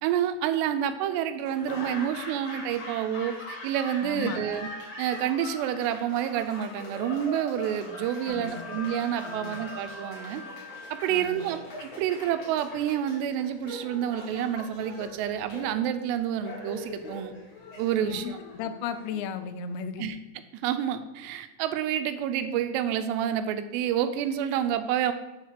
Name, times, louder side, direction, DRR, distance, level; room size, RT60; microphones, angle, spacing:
voice 1, 0.0-4.7 5.0-10.4 10.9-17.3 17.8-18.4 20.0-20.2 20.5-25.1, right 10 dB, 85° right, 9 dB, 2.6 m, -29 dB
Laughter / Applause, 1.4-19.5, left 1 dB, 50° left, 2.1 m, -42 dB
voice 2, 4.0-4.4 8.3-8.7 9.2-9.6 11.1-11.5 18.0-20.1, left 7 dB, 85° left, 10 dB, 2.9 m, -35 dB
Wind instrument woodwind instrument, 7.8-11.5, equal, 45° right, 1.4 m, -46 dB
7.7 x 4.0 x 6.4 m, 1.1 s
omnidirectional pair, 5.0 m